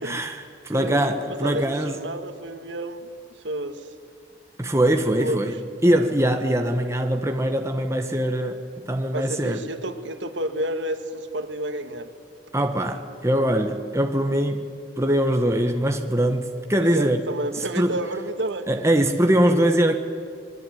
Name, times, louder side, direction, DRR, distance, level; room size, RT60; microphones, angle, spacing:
voice 1, 0.0-2.0 4.6-5.6 5.8-9.6 12.5-14.7 15.0-17.2 17.8-18.0 18.7-20.0, right 1 dB, 15° right, 1.5 m, -22 dB
voice 2, 0.7-3.1 3.4-3.9 5.0-5.4 9.1-12.1 16.8-18.7, right 1 dB, 75° right, 2.0 m, -30 dB
26.0 x 22.0 x 9.5 m
head